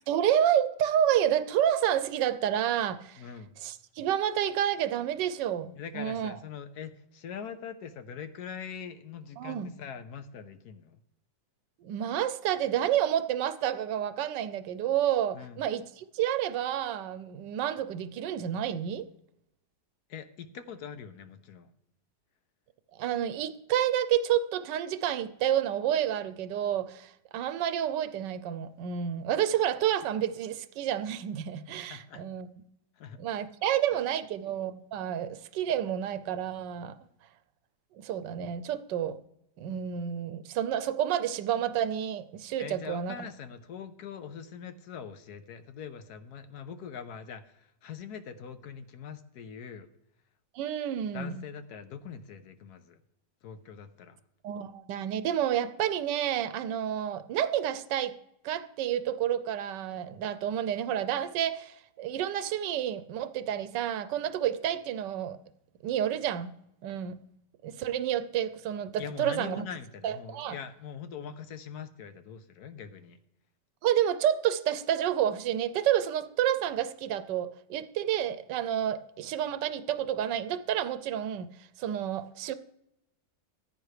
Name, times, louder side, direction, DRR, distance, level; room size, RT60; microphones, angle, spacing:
voice 1, 0.1-3.2 3.6-6.4 9.4-9.7 11.8-19.0 23.0-32.5 33.2-36.9 38.0-39.2 39.6-43.1 50.5-51.4 54.4-58.1 58.4-65.4 65.8-66.5 66.8-67.2 67.6-69.6 70.0-70.6 73.8-81.5 81.8-82.5, right 10 dB, 85° right, 1.3 m, -29 dB
voice 2, 3.2-3.5 5.8-11.0 15.3-15.6 20.1-21.7 31.9-32.2 33.0-33.2 42.6-49.9 51.1-53.0 53.4-54.2 69.0-73.2, left 7 dB, 70° left, 1.2 m, -42 dB
14.5 x 8.9 x 3.2 m
omnidirectional pair, 1.9 m